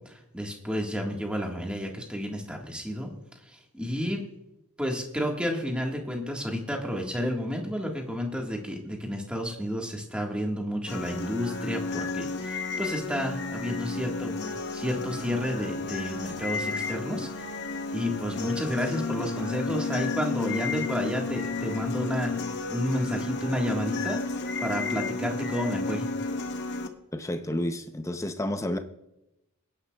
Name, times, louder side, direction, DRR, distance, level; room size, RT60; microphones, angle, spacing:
voice 1, 0.1-3.1 3.5-4.2 4.8-14.4 14.7-17.5 17.9-22.3 22.7-24.2 24.6-26.1, equal, 5° right, 1.6 m, -31 dB
sound 1, 10.9-26.9, left 3 dB, 50° left, 0.9 m, -32 dB
voice 2, 27.1-28.8, left 1 dB, 15° left, 0.7 m, -30 dB
23.5 x 10.5 x 2.3 m
head